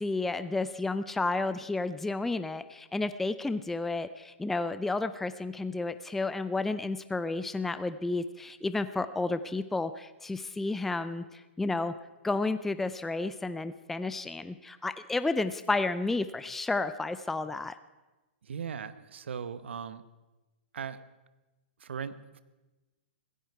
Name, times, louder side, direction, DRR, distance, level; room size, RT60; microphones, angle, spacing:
voice 1, 0.0-11.9 12.2-17.8, left 3 dB, 5° left, 12 dB, 0.4 m, -31 dB
voice 2, 18.4-20.0 20.7-21.0 21.8-22.4, right 7 dB, 85° right, 14 dB, 0.9 m, -38 dB
16.0 x 15.0 x 4.6 m, 1.1 s
hypercardioid pair, 150°, 6 cm